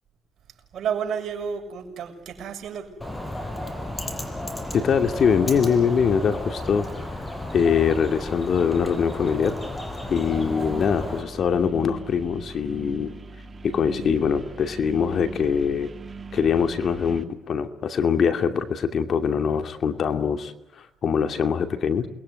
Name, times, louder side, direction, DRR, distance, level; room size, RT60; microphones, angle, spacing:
voice 1, 0.7-3.0, right 7 dB, 65° right, 2 dB, 6.6 m, -31 dB
Bird, 3.0-11.2, left 1 dB, 15° left, 5.7 m, -33 dB
voice 2, 4.7-6.9 7.5-9.6 10.1-13.1 13.6-15.9 16.3-22.1, left 6 dB, 60° left, 7 dB, 2.6 m, -23 dB
sound 1, 10.2-17.2, right 4 dB, 30° right, 2.5 m, -40 dB
28.5 x 21.5 x 9.8 m, 0.95 s
cardioid pair, 90°, 0 cm